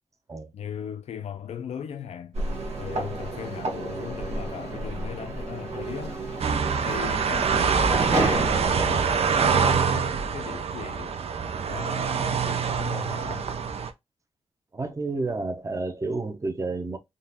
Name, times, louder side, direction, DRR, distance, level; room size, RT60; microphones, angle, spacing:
voice 1, 0.5-2.3 2.8-6.2 6.9-11.2 11.7-13.5, left 8 dB, 80° left, 0.4 m, -37 dB
sound 1, 2.3-9.1, right 2 dB, 85° right, 1.0 m, -30 dB
sound 2, 6.4-13.9, right 6 dB, 70° right, 0.5 m, -25 dB
voice 2, 14.7-17.0, right 3 dB, 30° right, 0.7 m, -30 dB
3.7 x 2.4 x 2.7 m
wide cardioid pair, 95°, 11 cm